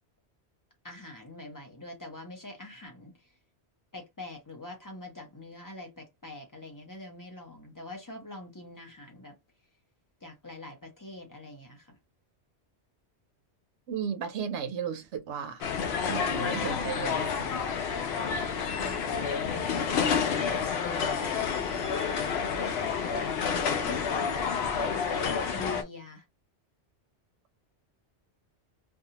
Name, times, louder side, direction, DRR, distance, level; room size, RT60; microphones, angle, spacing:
voice 1, 0.8-3.1 3.9-9.4 10.2-12.0 18.7-19.5 21.2-23.4 23.8-26.2, left 2 dB, 20° left, 0.6 m, -45 dB
voice 2, 13.9-15.6 16.0-17.5, right 7 dB, 85° right, 0.9 m, -34 dB
sound 1, 15.6-25.8, left 6 dB, 70° left, 0.8 m, -29 dB
2.6 x 2.3 x 2.8 m
omnidirectional pair, 1.1 m